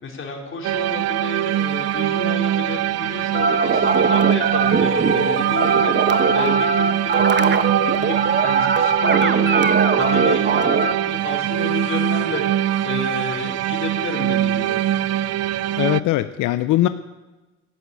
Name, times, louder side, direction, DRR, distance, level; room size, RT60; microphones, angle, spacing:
voice 1, 0.0-14.8, left 3 dB, 40° left, 0 dB, 4.1 m, -31 dB
sound 1, 0.6-16.0, right 12 dB, 55° right, 0.4 m, -23 dB
sound 2, 3.3-10.9, right 5 dB, 35° right, 1.1 m, -20 dB
voice 2, 15.8-16.9, left 15 dB, 85° left, 12 dB, 0.6 m, -20 dB
13.5 x 10.5 x 8.3 m, 1.1 s
cardioid pair, 90°, 30 cm